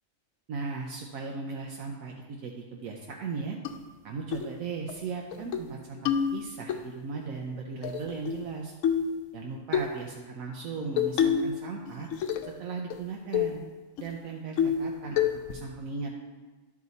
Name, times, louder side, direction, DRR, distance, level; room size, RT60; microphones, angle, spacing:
voice 1, 0.5-3.6 4.0-8.7 9.3-12.1 12.5-13.6 14.0-16.2, right 4 dB, 85° right, 0 dB, 1.2 m, -37 dB
sound 1, 3.7-3.8 4.3-4.5 4.9-5.0 5.3-5.7 6.1-6.8 7.8-8.5 8.8-9.1 9.7-9.9 11.0-11.6 11.9-12.6 12.9-13.0 13.3-13.6 14.0-14.1 14.6-14.9 15.2-15.6, left 8 dB, 75° left, 1.0 m, -27 dB
10.5 x 4.9 x 4.0 m, 1.3 s
omnidirectional pair, 1.4 m